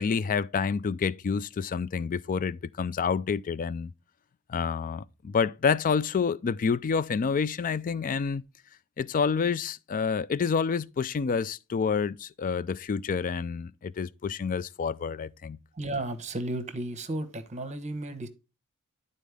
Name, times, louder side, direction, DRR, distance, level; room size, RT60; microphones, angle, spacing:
voice 1, 0.0-3.9 4.5-8.4 9.0-15.6, left 6 dB, 35° left, 0.3 m, -28 dB
voice 2, 15.7-18.3, right 1 dB, 30° right, 1.1 m, -33 dB
11.0 x 4.2 x 3.4 m
head